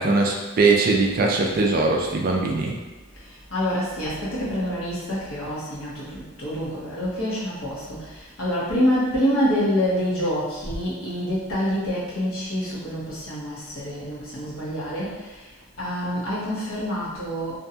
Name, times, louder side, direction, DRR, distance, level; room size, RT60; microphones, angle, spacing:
voice 1, 0.0-2.8, right 3 dB, 40° right, 0 dB, 0.3 m, -21 dB
voice 2, 3.5-15.4 15.8-17.6, equal, 65° left, -8 dB, 0.9 m, -26 dB
2.6 x 2.2 x 2.7 m, 1.2 s
head